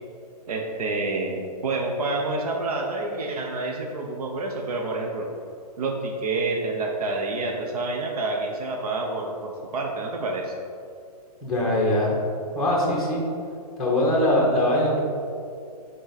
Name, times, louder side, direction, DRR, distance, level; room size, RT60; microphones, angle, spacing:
voice 1, 0.5-5.3 5.8-10.5, right 2 dB, 70° right, 0 dB, 0.9 m, -28 dB
voice 2, 11.4-12.2 12.5-13.2 13.8-15.0, left 1 dB, ahead, -4 dB, 1.1 m, -22 dB
7.8 x 3.8 x 4.1 m, 2.4 s
hypercardioid pair, 165°, 20 cm